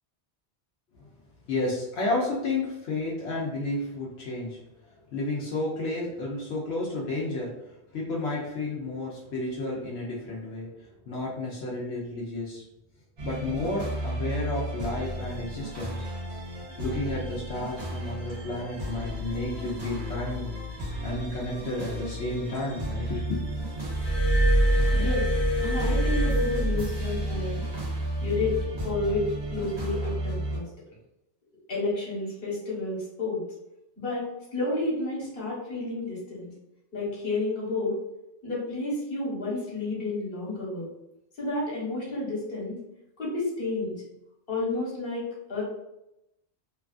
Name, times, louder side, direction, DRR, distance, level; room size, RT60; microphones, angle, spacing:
voice 1, 1.5-4.6 5.1-7.5 7.9-10.7 11.1-12.6 13.2-16.0 16.8-20.5 21.0-23.4, left 2 dB, 85° left, -4 dB, 0.9 m, -31 dB
sound 1, 13.2-30.6, right 1 dB, 75° right, 1.2 m, -33 dB
Glass, 23.8-27.4 28.4-28.6, right 1 dB, 25° left, 0.9 m, -24 dB
voice 2, 24.9-25.3 25.6-27.6 28.2-30.7 31.7-33.4 34.0-36.5 36.9-38.0 38.4-40.9 41.4-42.8 43.2-43.9 44.5-45.6, left 2 dB, 60° left, -6 dB, 1.4 m, -30 dB
2.9 x 2.3 x 2.4 m, 0.86 s
omnidirectional pair, 1.1 m